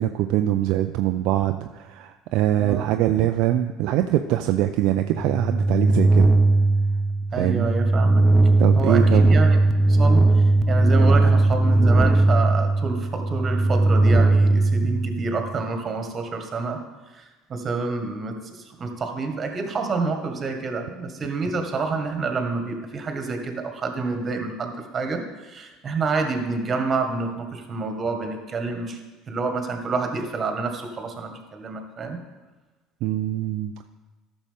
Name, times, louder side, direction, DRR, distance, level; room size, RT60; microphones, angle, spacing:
voice 1, 0.0-6.4 7.4-7.7 8.6-9.2 33.0-33.9, right 13 dB, 65° right, 6 dB, 0.4 m, -23 dB
voice 2, 2.6-2.9 7.3-8.2 8.8-9.6 9.9-16.8 17.1-17.2 17.5-29.0 29.3-32.2, right 4 dB, 35° right, 5 dB, 1.6 m, -28 dB
sound 1, 4.9-15.5, right 2 dB, 5° right, 0.7 m, -18 dB
14.0 x 6.3 x 3.6 m, 1.2 s
hypercardioid pair, 70°, 0 cm